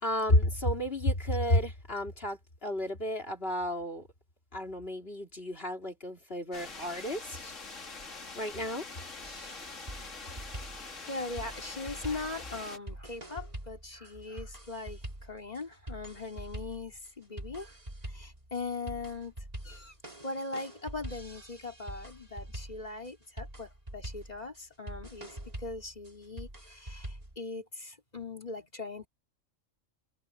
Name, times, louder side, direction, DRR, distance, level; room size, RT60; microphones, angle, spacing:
voice 1, 0.0-4.1 4.5-7.5 8.4-8.8, left 1 dB, 45° left, 3.6 m, -31 dB
sound 1, 6.5-12.8, left 3 dB, 70° left, 2.8 m, -44 dB
sound 2, 9.2-27.4, right 1 dB, 30° right, 3.9 m, -45 dB
voice 2, 11.1-17.7 18.1-19.3 19.6-19.9 20.2-29.1, left 3 dB, 30° left, 3.5 m, -40 dB
omnidirectional pair, 1.4 m